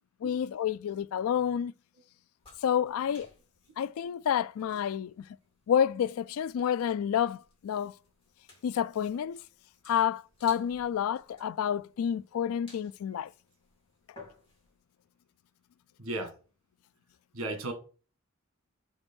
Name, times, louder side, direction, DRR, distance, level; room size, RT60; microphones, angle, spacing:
voice 1, 0.2-1.7 2.6-3.3 3.8-5.2 5.7-7.9 8.6-9.4 9.9-13.3, left 8 dB, 80° left, 0.3 m, -29 dB
sound 1, 2.4-14.8, left 2 dB, 25° left, 3.7 m, -58 dB
voice 2, 16.0-16.3 17.3-17.7, right 2 dB, 75° right, 1.5 m, -34 dB
6.0 x 5.3 x 4.4 m
head